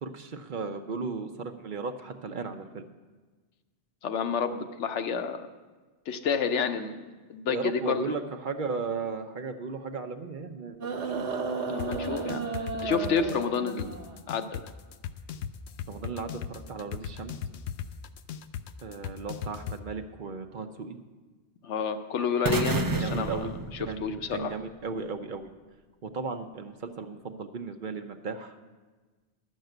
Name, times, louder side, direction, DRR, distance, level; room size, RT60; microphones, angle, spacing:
voice 1, 0.0-2.8 7.5-11.3 15.9-17.3 18.8-21.0 22.8-25.5 26.0-28.5, right 4 dB, 50° right, 7 dB, 0.8 m, -36 dB
voice 2, 4.0-5.5 6.1-7.0 7.3-8.0 11.7-12.4 12.8-14.0 14.3-14.7 21.6-23.5 24.0-24.6, left 6 dB, 90° left, 8 dB, 1.1 m, -29 dB
sound 1, 10.8-14.2 15.3-15.4, right 5 dB, 85° right, 1.3 m, -33 dB
sound 2, 11.8-19.8, left 9 dB, 70° left, 0.8 m, -37 dB
sound 3, 22.4-24.5, right 3 dB, 30° right, 0.4 m, -30 dB
12.0 x 6.5 x 7.8 m, 1.3 s
omnidirectional pair, 1.2 m